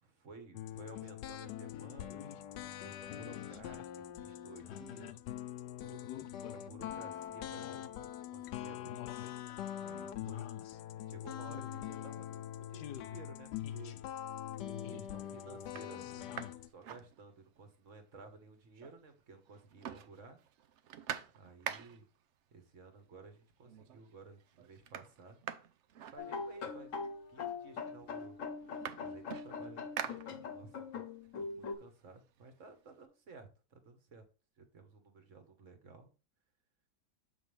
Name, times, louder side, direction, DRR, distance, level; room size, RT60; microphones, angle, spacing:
voice 1, 0.0-2.5 2.8-5.1 5.8-9.0 9.8-10.5 11.1-13.9 14.9-20.4 21.3-22.0 22.5-25.4 26.1-26.9 27.3-28.4 29.0-31.1 31.3-34.2 34.6-36.1, right 4 dB, 45° right, 7 dB, 1.7 m, -55 dB
sound 1, 0.5-16.7, left 11 dB, 75° left, 1.2 m, -43 dB
sound 2, 14.2-14.7 15.2-15.3 15.6-17.7 18.0-18.1 18.4-19.2 19.5-22.2 23.2-23.3 23.6-24.1 24.4-26.8 27.6-27.7 28.0-30.8 31.2-33.0, right 9 dB, 70° right, 0.6 m, -46 dB
sound 3, 26.2-31.7, left 5 dB, 50° left, 1.2 m, -42 dB
7.4 x 6.3 x 3.3 m, 0.33 s
omnidirectional pair, 2.0 m